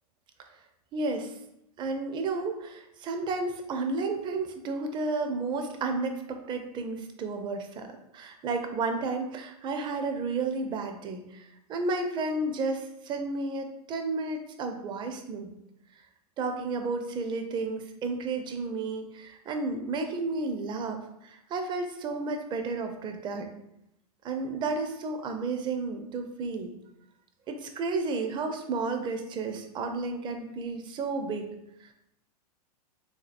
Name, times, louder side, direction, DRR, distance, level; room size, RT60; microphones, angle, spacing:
voice 1, 0.9-1.3 1.8-7.9 8.1-15.5 16.4-23.5 24.2-26.8 27.5-31.5 31.8-31.9, right 3 dB, 25° right, 5 dB, 0.4 m, -32 dB
3.7 x 2.7 x 2.5 m, 0.82 s
hypercardioid pair, 100°, 20 cm